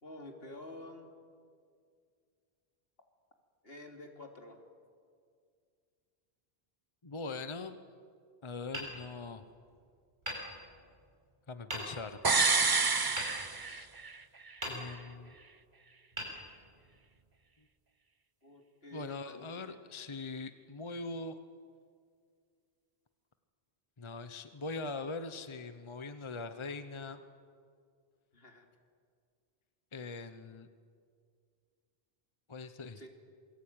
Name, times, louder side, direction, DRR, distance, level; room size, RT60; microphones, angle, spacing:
voice 1, 0.0-1.1 3.6-4.6 18.4-19.8 28.3-28.7 32.9-33.1, left 1 dB, 70° left, 3 dB, 3.2 m, -49 dB
voice 2, 7.0-7.8 8.4-9.5 11.5-12.2 13.6-13.9 14.6-15.3 18.9-21.4 24.0-27.2 29.9-30.7 32.5-33.1, left 3 dB, 30° left, 10 dB, 1.0 m, -42 dB
Hammer, 8.7-9.7 10.2-11.1 11.7-12.3 13.2-14.1 14.6-15.3 16.1-17.1, equal, 50° right, 7.1 m, -43 dB
sound 1, 12.2-14.2 14.5-14.6, right 4 dB, 25° right, 0.6 m, -28 dB
27.5 x 22.5 x 9.0 m, 2.2 s
omnidirectional pair, 1.1 m